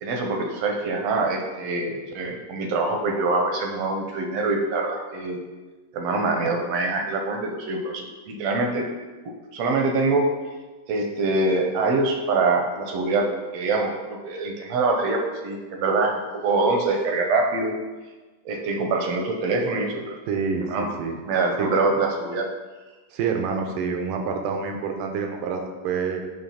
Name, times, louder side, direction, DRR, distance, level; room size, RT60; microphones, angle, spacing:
voice 1, 0.0-5.4 5.9-8.9 9.5-10.3 10.9-13.3 13.5-17.7 18.4-20.2 20.7-20.9 21.3-22.5, right 3 dB, 75° right, 2 dB, 1.6 m, -24 dB
voice 2, 20.3-21.2 21.6-21.7 23.1-26.2, right 5 dB, 90° right, 3 dB, 2.4 m, -27 dB
8.9 x 3.2 x 5.7 m, 1.3 s
omnidirectional pair, 3.7 m